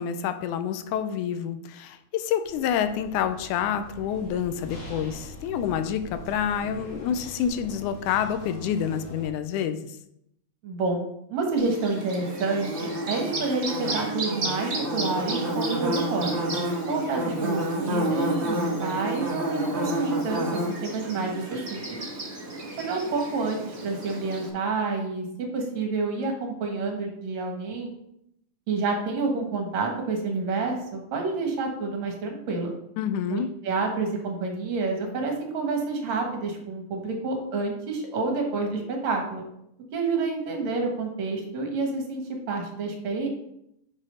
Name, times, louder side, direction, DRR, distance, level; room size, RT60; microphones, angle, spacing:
voice 1, 0.0-9.9 33.0-33.5, left 8 dB, 90° left, 9 dB, 2.1 m, -28 dB
sound 1, 2.4-9.3, equal, 45° left, 1.9 m, -42 dB
voice 2, 10.6-11.0 11.3-16.4 16.9-22.0 22.8-27.9 28.7-32.7 33.3-39.4 39.9-42.2 42.5-43.3, right 3 dB, 65° right, 2 dB, 2.7 m, -29 dB
Bird / Buzz, 11.6-24.5, right 1 dB, 40° right, 1.0 m, -30 dB
6.3 x 6.2 x 5.0 m, 0.77 s
omnidirectional pair, 3.5 m